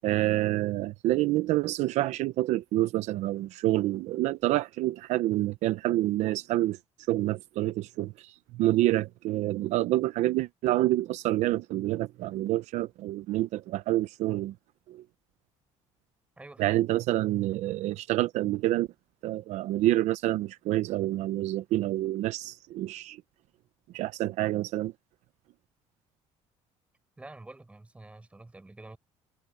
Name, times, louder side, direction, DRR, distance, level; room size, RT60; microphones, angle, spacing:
voice 1, 0.0-6.8 7.1-14.5 14.9-15.0 16.6-18.9 19.2-23.2 23.9-24.9, right 16 dB, 70° right, 0.7 m, -27 dB
voice 2, 16.4-16.8 27.2-29.0, right 2 dB, 10° right, 5.3 m, -47 dB
cardioid pair, 145°, 12 cm